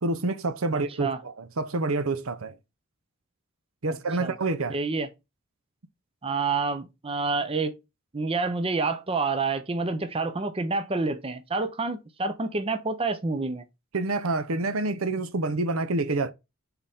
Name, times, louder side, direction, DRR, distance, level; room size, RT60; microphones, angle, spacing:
voice 1, 0.0-2.6 3.8-4.8 13.9-16.3, right 3 dB, 70° right, 0.8 m, -27 dB
voice 2, 0.7-1.2 4.2-4.4 4.7-5.1 6.2-7.7 8.1-13.6, right 3 dB, 25° right, 0.6 m, -28 dB
7.9 x 4.2 x 3.5 m
head